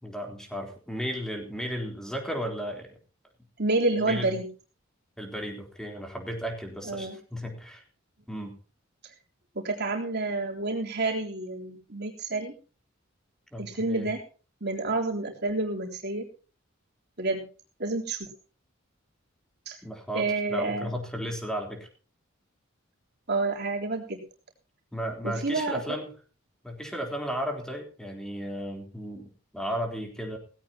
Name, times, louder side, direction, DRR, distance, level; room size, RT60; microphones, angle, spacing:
voice 1, 0.0-3.0 4.1-4.3 5.2-7.8 8.3-8.5 13.5-14.1 19.8-21.9 24.9-26.1 26.6-30.4, equal, 5° left, 2 dB, 3.7 m, -34 dB
voice 2, 3.6-4.5 6.8-7.2 9.6-12.5 13.6-14.2 14.6-16.2 17.2-17.4 17.8-18.3 19.7-19.8 20.1-20.9 23.3-24.2 25.2-26.0, right 3 dB, 55° right, 0 dB, 3.6 m, -29 dB
17.5 x 16.5 x 2.9 m, 0.36 s
head